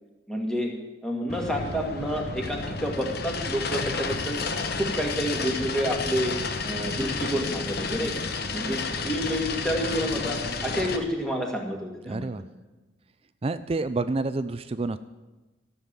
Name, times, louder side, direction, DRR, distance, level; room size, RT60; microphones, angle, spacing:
voice 1, 0.3-0.7 1.0-4.4 4.8-6.3 6.6-8.2 8.5-12.4, equal, 5° left, 0 dB, 2.0 m, -29 dB
sound 1, 1.3-11.0, left 4 dB, 55° left, 1.0 m, -31 dB
voice 2, 12.1-12.4 13.4-15.0, right 3 dB, 30° right, 13 dB, 0.4 m, -28 dB
13.5 x 7.1 x 8.9 m, 1.1 s
head